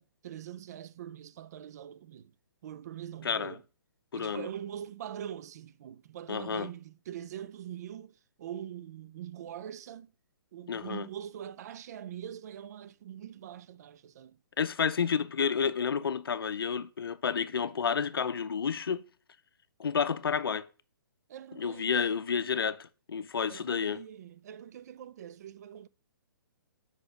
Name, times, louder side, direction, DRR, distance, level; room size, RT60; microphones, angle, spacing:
voice 1, 0.0-2.3 2.6-3.6 4.1-10.1 10.5-14.4 21.3-22.1 23.5-25.9, right 10 dB, 45° right, 0.4 m, -43 dB
voice 2, 4.1-4.5 6.3-6.7 10.7-11.1 14.6-19.0 19.8-20.7 21.6-24.0, left 6 dB, 90° left, 0.5 m, -30 dB
5.1 x 4.9 x 5.1 m
hypercardioid pair, 150°, 12 cm